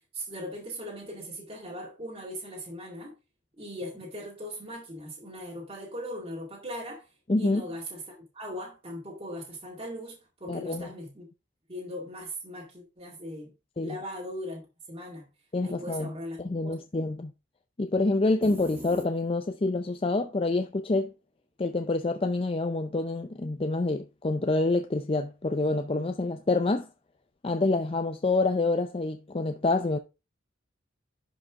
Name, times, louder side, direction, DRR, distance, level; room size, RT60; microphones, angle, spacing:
voice 1, 0.1-3.1 3.6-7.1 7.4-11.3 11.7-13.5 13.8-14.6 14.9-15.3 15.6-16.4 16.6-16.7, equal, 30° right, 2.3 m, -39 dB
voice 2, 7.3-7.6 10.5-10.9 13.8-13.9 15.5-16.1 16.4-17.3 17.8-21.1 21.6-26.9 27.4-30.0, left 2 dB, 30° left, 0.5 m, -27 dB
sound 1, 18.4-19.7, equal, 10° right, 1.0 m, -43 dB
11.0 x 5.2 x 3.6 m
head